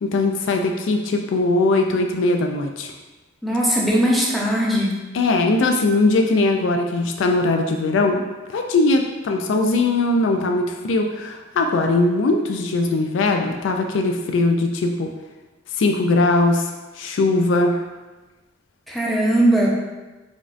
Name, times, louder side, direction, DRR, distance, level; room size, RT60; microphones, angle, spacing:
voice 1, 0.0-2.9 5.1-8.2 8.5-15.1 15.8-17.8, left 2 dB, 80° left, 3 dB, 0.3 m, -20 dB
voice 2, 3.4-4.9 18.9-19.7, right 1 dB, ahead, -5 dB, 0.6 m, -19 dB
5.0 x 2.6 x 2.4 m, 1.2 s
head